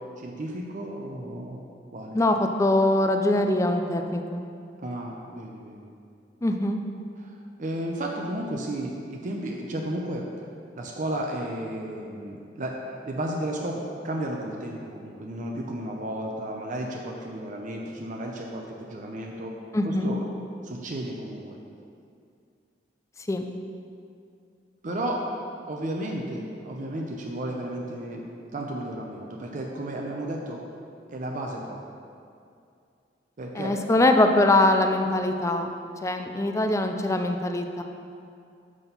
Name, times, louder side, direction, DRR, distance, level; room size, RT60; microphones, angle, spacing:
voice 1, 0.2-1.6 1.9-2.2 4.8-5.9 7.2-10.2 10.7-12.7 13.0-13.8 14.0-19.5 19.8-20.2 20.6-21.6 24.8-25.2 25.7-28.2 28.5-30.6 31.1-31.8 33.4-33.7, right 1 dB, 45° right, 0 dB, 0.6 m, -33 dB
voice 2, 2.1-4.5 6.4-6.8 19.7-20.1 23.3-23.5 33.5-35.7 36.0-37.8, left 2 dB, 15° left, 5 dB, 0.4 m, -23 dB
6.1 x 5.8 x 5.4 m, 2.4 s
head